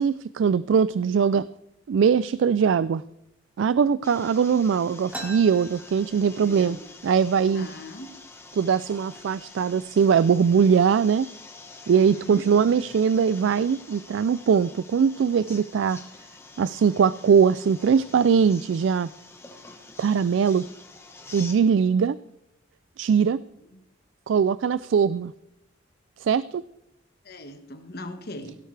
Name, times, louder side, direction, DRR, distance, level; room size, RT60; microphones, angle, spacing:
voice 1, 0.0-1.5 1.9-3.0 3.6-6.8 7.0-7.7 8.5-11.3 11.9-16.0 16.6-19.1 20.0-20.6 21.3-22.2 23.0-23.4 24.3-25.3 26.2-26.6, right 6 dB, 70° right, 17 dB, 0.3 m, -21 dB
sound 1, 4.0-21.5, left 3 dB, 15° left, 1.3 m, -46 dB
sound 2, 5.1-6.7 7.1-7.2 7.4-8.0 8.6-8.8 9.5-9.7 10.1-10.6, right 1 dB, 10° right, 2.5 m, -40 dB
voice 2, 6.1-6.8 7.5-8.2 11.9-12.4 23.7-23.8 27.2-28.6, left 1 dB, 50° left, 7 dB, 1.5 m, -40 dB
17.5 x 11.5 x 3.3 m, 0.85 s
head